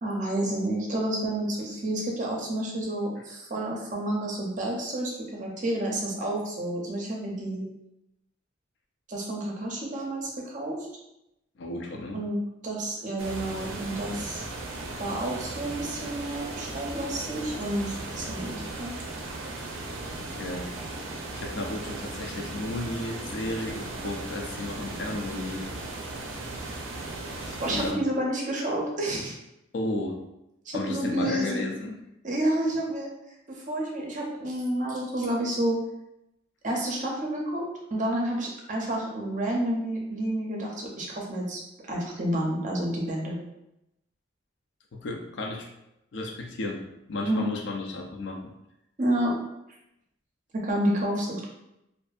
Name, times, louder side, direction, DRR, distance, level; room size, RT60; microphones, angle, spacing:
voice 1, 0.0-7.6 9.1-10.8 12.1-14.4 15.0-18.9 27.6-29.4 30.7-31.6 32.2-33.1 33.5-35.8 36.6-37.6 37.9-41.6 41.9-43.4 47.3-47.5 49.0-49.3 50.6-51.4, right 1 dB, 40° right, -2 dB, 0.5 m, -29 dB
voice 2, 11.6-12.2 20.2-20.7 21.3-25.7 27.3-28.0 29.7-30.2 30.7-32.0 44.9-45.7 46.1-46.8 47.1-48.5, left 2 dB, 60° left, 2 dB, 0.4 m, -33 dB
sound 1, 13.2-27.9, right 2 dB, 85° right, 0.5 m, -37 dB
2.6 x 2.4 x 2.3 m, 0.86 s
head